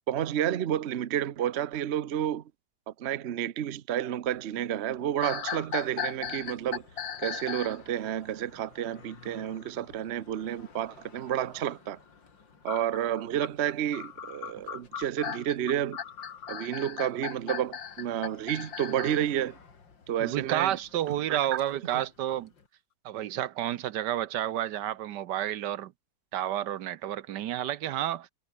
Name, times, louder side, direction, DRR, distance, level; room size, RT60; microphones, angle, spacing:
voice 1, 0.1-2.4 2.9-6.8 7.2-12.0 12.6-16.0 16.5-19.6 20.1-20.8 21.3-21.4 21.9-22.0, right 11 dB, 50° right, 0.8 m, -30 dB
sound 1, 4.2-22.7, left 5 dB, 80° left, 3.5 m, -56 dB
sound 2, 5.2-7.8 12.7-19.3, left 8 dB, 55° left, 1.7 m, -37 dB
voice 2, 20.2-22.5 23.0-25.9 26.3-28.3, right 12 dB, 75° right, 1.3 m, -30 dB
omnidirectional pair, 2.0 m